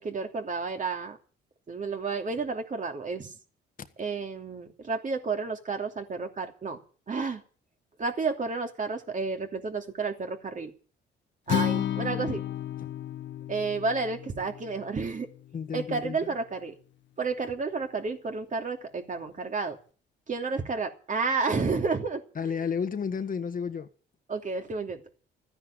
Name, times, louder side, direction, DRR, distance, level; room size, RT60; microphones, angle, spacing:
voice 1, 0.0-1.2 1.7-3.3 4.0-6.8 7.1-7.4 8.0-10.7 11.5-12.4 13.5-15.3 15.7-16.7 17.2-19.8 20.3-22.6 24.3-25.0, right 4 dB, 40° right, 2.9 m, -31 dB
Acoustic guitar, 11.5-15.7, left 11 dB, 65° left, 1.4 m, -33 dB
voice 2, 15.5-16.2 22.3-23.9, left 6 dB, 45° left, 1.5 m, -32 dB
13.5 x 10.0 x 9.0 m
cardioid pair, 90°, 20 cm